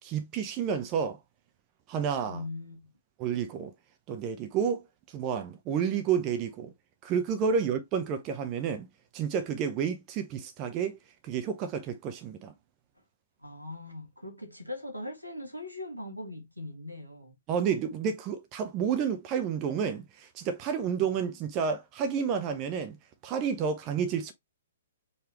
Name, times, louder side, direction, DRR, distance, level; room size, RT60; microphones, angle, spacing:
voice 1, 0.0-1.2 1.9-2.4 3.2-3.7 4.1-4.8 5.1-6.7 7.0-8.9 9.1-11.0 11.2-12.5 17.5-23.0 23.2-24.3, right 7 dB, 30° right, 0.8 m, -30 dB
voice 2, 2.2-2.9 13.0-13.1 13.4-17.4 21.0-21.2, left 2 dB, 90° right, 1.7 m, -41 dB
4.7 x 3.3 x 3.0 m
figure-of-eight pair, 120°, 0 cm